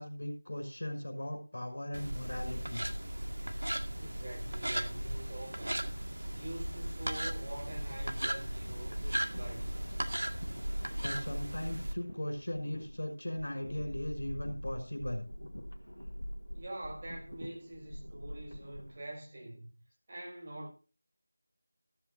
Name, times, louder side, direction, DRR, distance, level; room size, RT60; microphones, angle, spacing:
voice 1, 0.0-2.8 11.0-15.2, left 1 dB, 60° left, 5.9 m, -38 dB
sound 1, 1.9-11.9, right 1 dB, 70° right, 2.0 m, -37 dB
voice 2, 4.0-5.9 6.3-9.7 16.5-19.7 20.1-20.7, right 1 dB, 35° right, 6.6 m, -45 dB
sound 2, 8.5-19.0, equal, 85° left, 1.7 m, -45 dB
14.5 x 14.0 x 2.7 m
figure-of-eight pair, 170°, 0 cm